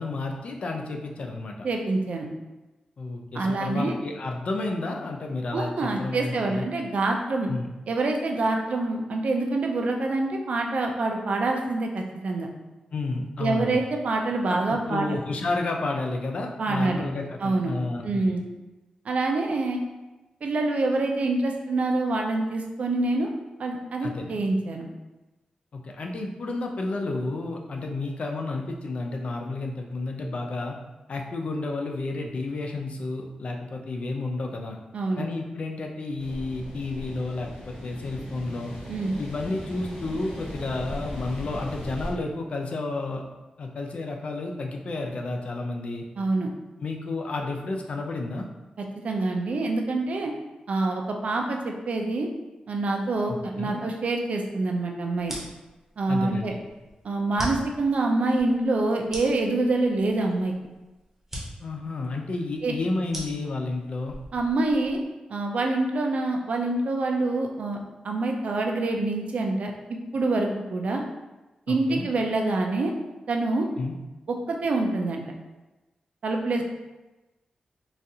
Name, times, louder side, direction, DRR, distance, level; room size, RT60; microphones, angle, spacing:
voice 1, 0.0-1.6 3.0-6.7 7.5-7.7 12.9-13.8 14.5-18.3 24.0-24.4 25.7-30.8 31.1-34.8 35.2-38.7 39.2-43.2 43.6-46.0 46.8-48.5 53.3-53.8 56.1-56.6 61.6-64.2 71.7-72.1 73.8-73.9, left 2 dB, 55° left, 2 dB, 0.4 m, -31 dB
voice 2, 1.6-2.3 3.3-3.9 5.5-7.5 7.9-12.5 13.4-15.2 16.6-17.0 17.4-17.7 18.0-18.4 19.1-19.8 20.4-23.3 23.6-24.9 34.9-35.3 38.9-39.1 46.2-46.5 49.0-50.3 50.7-52.3 52.7-55.3 56.0-56.5 57.0-60.5 62.6-62.8 64.3-65.0 65.3-67.8 68.0-69.7 70.1-71.0 71.7-72.9 73.3-73.7 74.3-75.2 76.2-76.6, right 2 dB, 60° right, 2 dB, 0.4 m, -26 dB
sound 1, 36.2-42.1, equal, 75° left, 1.2 m, -38 dB
sound 2, 55.2-65.1, equal, 10° right, 0.8 m, -41 dB
3.9 x 2.4 x 2.7 m, 1.1 s
wide cardioid pair, 145°, 2 cm